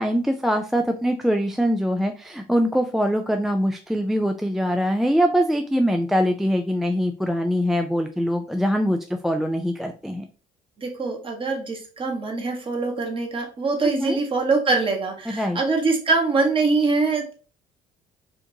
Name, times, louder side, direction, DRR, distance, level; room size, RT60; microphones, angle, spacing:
voice 1, 0.0-10.2 13.8-14.2 15.3-15.6, equal, ahead, 4 dB, 0.3 m, -23 dB
voice 2, 10.8-17.3, right 3 dB, 30° right, 2 dB, 1.3 m, -23 dB
5.0 x 2.6 x 2.8 m, 0.38 s
cardioid pair, 110°, 17 cm